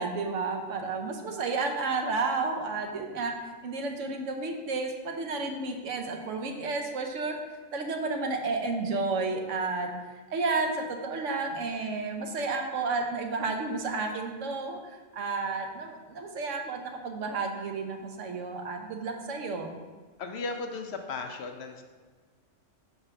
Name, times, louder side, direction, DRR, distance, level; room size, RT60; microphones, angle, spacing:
voice 1, 0.0-3.3 3.6-7.3 7.7-9.9 10.3-19.7, right 3 dB, 75° right, 4 dB, 1.1 m, -31 dB
voice 2, 20.2-21.8, left 3 dB, 65° left, 5 dB, 0.8 m, -36 dB
5.4 x 4.0 x 6.0 m, 1.4 s
omnidirectional pair, 1.3 m